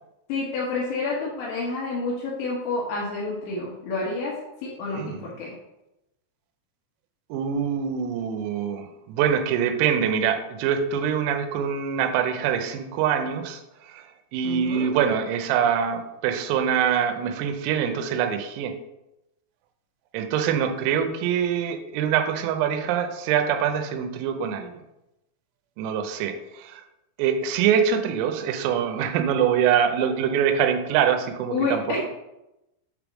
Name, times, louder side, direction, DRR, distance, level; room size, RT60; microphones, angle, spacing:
voice 1, 0.3-4.3 4.6-5.6 14.4-14.9 31.5-32.0, left 3 dB, 70° left, -4 dB, 3.4 m, -29 dB
voice 2, 5.0-5.3 7.3-18.8 20.1-24.7 25.8-26.8 27.2-31.8, right 8 dB, 90° right, 6 dB, 3.5 m, -24 dB
8.1 x 3.5 x 6.1 m, 0.91 s
omnidirectional pair, 5.9 m